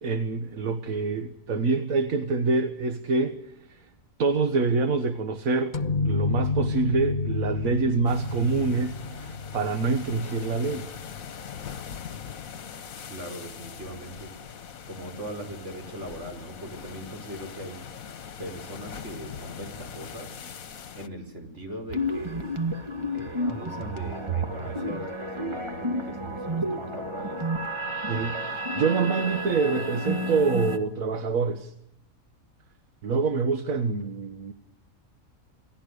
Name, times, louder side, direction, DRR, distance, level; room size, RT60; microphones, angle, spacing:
voice 1, 0.0-3.9 4.2-5.8 6.1-10.9 28.1-31.7 33.0-34.5, right 4 dB, 80° right, 8 dB, 1.7 m, -26 dB
sound 1, 5.7-11.3, left 3 dB, 40° left, 1.0 m, -30 dB
sound 2, 8.1-21.1, left 7 dB, 75° left, 1.6 m, -41 dB
voice 2, 13.1-14.3 14.9-17.8 18.4-20.3 20.9-22.6 23.1-27.4, right 1 dB, 55° right, 3 dB, 5.2 m, -40 dB
sound 3, 21.9-30.8, equal, 20° right, 2.0 m, -31 dB
28.5 x 18.0 x 6.6 m, 0.77 s
omnidirectional pair, 1.4 m